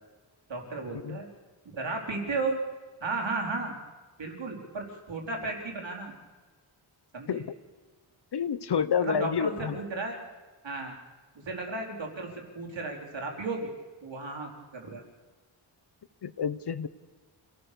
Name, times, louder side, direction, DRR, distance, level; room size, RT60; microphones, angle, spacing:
voice 1, 0.5-1.3 1.7-2.6 3.0-3.7 4.2-6.1 7.1-7.4 9.0-10.2 10.6-11.0 11.3-13.7 14.0-15.0, right 3 dB, 65° right, 0 dB, 4.5 m, -34 dB
voice 2, 8.3-9.8 16.2-16.9, left 7 dB, 55° left, 15 dB, 0.9 m, -29 dB
27.0 x 17.5 x 7.0 m, 1.3 s
wide cardioid pair, 135°, 47 cm